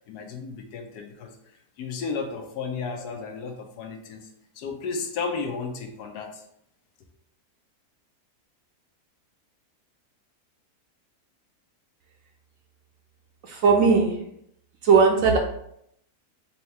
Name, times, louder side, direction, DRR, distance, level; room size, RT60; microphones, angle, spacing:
voice 1, 0.1-1.4 1.8-4.3 4.6-6.4, left 5 dB, 80° left, 4 dB, 1.2 m, -33 dB
voice 2, 13.4-14.2 14.8-15.4, right 5 dB, 70° right, 2 dB, 0.9 m, -18 dB
4.4 x 2.9 x 3.2 m, 0.73 s
omnidirectional pair, 1.7 m